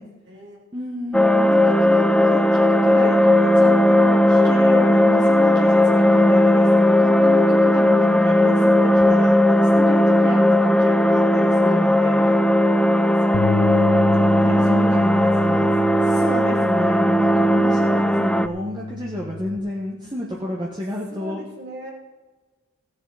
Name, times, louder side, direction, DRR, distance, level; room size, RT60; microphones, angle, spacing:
voice 1, 0.0-0.7 12.2-12.4 12.8-16.3 21.1-21.9, right 1 dB, 50° right, -1 dB, 3.1 m, -40 dB
voice 2, 0.7-12.3 14.4-15.7 16.2-21.4, equal, 20° right, -3 dB, 1.5 m, -30 dB
sound 1, 1.1-18.5, left 1 dB, 5° left, 0.3 m, -17 dB
Bass guitar, 13.3-19.6, left 3 dB, 70° left, 0.8 m, -29 dB
16.5 x 10.0 x 4.2 m, 1.2 s
head